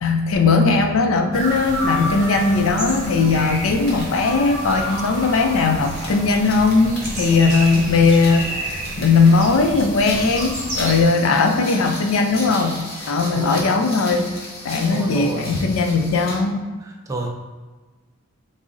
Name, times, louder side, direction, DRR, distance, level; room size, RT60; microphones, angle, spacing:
voice 1, 0.0-12.8 13.1-14.3 14.6-16.6, left 4 dB, 75° left, 4 dB, 0.4 m, -18 dB
sound 1, 1.3-11.0, equal, 35° right, 0.8 m, -29 dB
sound 2, 2.8-16.5, left 1 dB, 45° left, 0.9 m, -37 dB
voice 2, 14.9-15.6 16.8-17.3, right 2 dB, 15° right, 0 dB, 0.4 m, -30 dB
3.7 x 2.0 x 3.7 m, 1.3 s
head